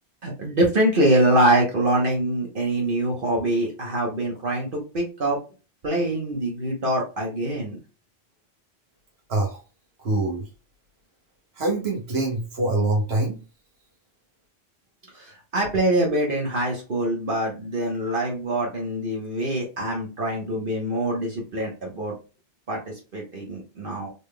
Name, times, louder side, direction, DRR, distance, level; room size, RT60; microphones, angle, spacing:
voice 1, 0.2-5.4 5.8-7.8 15.1-22.2 22.7-24.1, right 1 dB, 55° right, -2 dB, 1.3 m, -24 dB
voice 2, 10.0-10.5 11.6-13.4, right 2 dB, 80° right, -3 dB, 1.4 m, -24 dB
4.1 x 3.5 x 2.2 m, 0.32 s
omnidirectional pair, 1.1 m